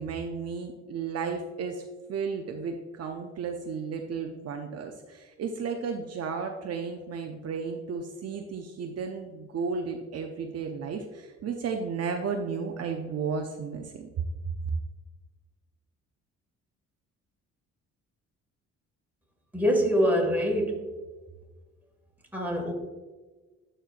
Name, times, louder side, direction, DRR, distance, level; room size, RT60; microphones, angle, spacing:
voice 1, 0.0-1.8 2.1-14.2, right 5 dB, 55° right, 3 dB, 0.6 m, -33 dB
voice 2, 19.5-20.8 22.3-22.7, equal, 5° right, -1 dB, 1.9 m, -24 dB
11.5 x 4.4 x 2.5 m, 1.3 s
cardioid pair, 90°, 30 cm